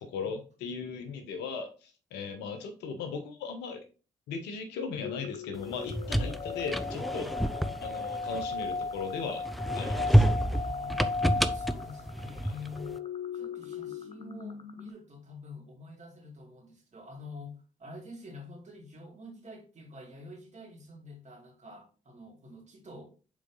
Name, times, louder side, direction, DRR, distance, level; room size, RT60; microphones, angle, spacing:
voice 1, 0.0-3.8 4.3-7.3 7.8-9.4 9.7-10.3, left 5 dB, 75° left, 7 dB, 1.1 m, -37 dB
sound 1, 5.0-14.9, left 4 dB, 35° left, 1.1 m, -37 dB
sound 2, 5.7-9.0 9.5-12.8, equal, ahead, 0.6 m, -28 dB
voice 2, 10.5-11.0 11.5-13.0 13.3-23.0, left 2 dB, 40° right, 1 dB, 2.5 m, -47 dB
6.5 x 4.2 x 3.8 m, 0.36 s
hypercardioid pair, 40°, 18 cm